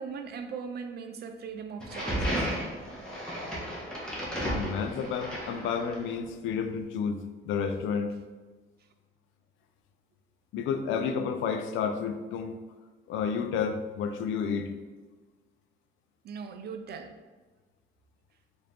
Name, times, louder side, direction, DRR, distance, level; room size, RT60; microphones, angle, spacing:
voice 1, 0.0-2.5 16.2-17.2, right 5 dB, 55° right, 7 dB, 0.4 m, -39 dB
sound 1, 1.8-6.1, equal, 5° left, 1.2 m, -33 dB
voice 2, 4.4-8.1 10.5-12.6 13.1-14.7, left 6 dB, 80° left, 7 dB, 0.4 m, -31 dB
3.9 x 2.6 x 3.4 m, 1.3 s
cardioid pair, 90°, 20 cm